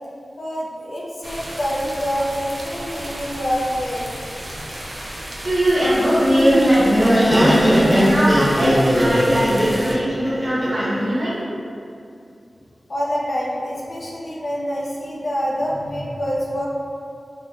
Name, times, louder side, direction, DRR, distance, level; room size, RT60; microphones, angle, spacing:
voice 1, 0.4-4.0 12.9-16.7, equal, 70° left, -4 dB, 0.3 m, -26 dB
sound 1, 1.2-9.9, right 1 dB, 45° right, 0.4 m, -33 dB
voice 2, 5.4-11.4, equal, 70° right, -9 dB, 0.8 m, -21 dB
Laughter, 6.0-11.0, equal, 10° left, 0.6 m, -17 dB
2.7 x 2.1 x 2.7 m, 2.4 s
cardioid pair, 45°, 0 cm